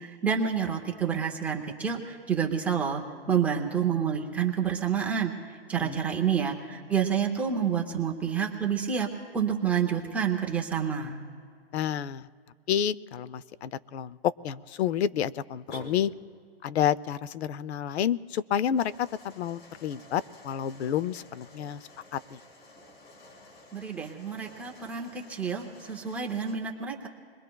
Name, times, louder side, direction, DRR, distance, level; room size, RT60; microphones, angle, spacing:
voice 1, 0.0-3.0 3.3-9.1 9.3-11.2 23.7-27.1, right 7 dB, 5° right, 0 dB, 0.5 m, -28 dB
voice 2, 11.7-12.3 12.7-16.1 16.6-21.8 22.1-22.4, left 9 dB, 85° left, 19 dB, 0.6 m, -29 dB
sound 1, 15.7-16.6, left 1 dB, 40° left, 3.2 m, -44 dB
sound 2, 18.7-26.6, left 2 dB, 70° left, 5.2 m, -53 dB
27.5 x 21.5 x 2.3 m, 2.1 s
hypercardioid pair, 160°, 32 cm